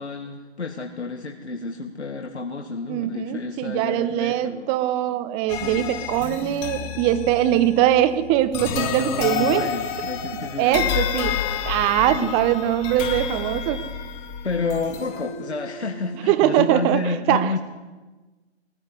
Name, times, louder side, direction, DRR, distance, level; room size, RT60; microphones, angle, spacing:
voice 1, 0.0-4.7 5.6-6.0 8.7-10.9 12.1-12.4 14.4-17.6, left 3 dB, 80° left, 3 dB, 1.9 m, -30 dB
voice 2, 2.9-9.7 10.6-11.4 11.6-13.8 16.3-17.6, right 13 dB, 15° right, 13 dB, 0.8 m, -22 dB
sound 1, 5.5-16.5, left 7 dB, 20° left, 1.5 m, -30 dB
20.5 x 15.5 x 8.3 m, 1.2 s
figure-of-eight pair, 135°, 33 cm